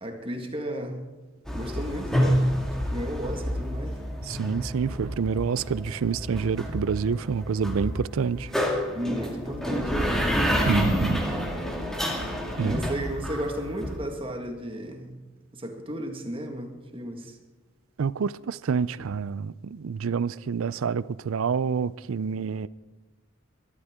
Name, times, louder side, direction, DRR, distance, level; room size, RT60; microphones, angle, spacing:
voice 1, 0.0-1.0 1.5-2.4 2.9-4.0 8.9-10.3 12.6-15.2 15.5-17.4, right 1 dB, 25° right, 1.7 m, -34 dB
sound 1, 1.5-14.0, equal, ahead, 2.0 m, -28 dB
voice 2, 4.2-8.6 10.7-11.2 12.6-12.8 18.0-22.7, right 6 dB, 80° right, 0.4 m, -27 dB
22.5 x 12.5 x 3.7 m
head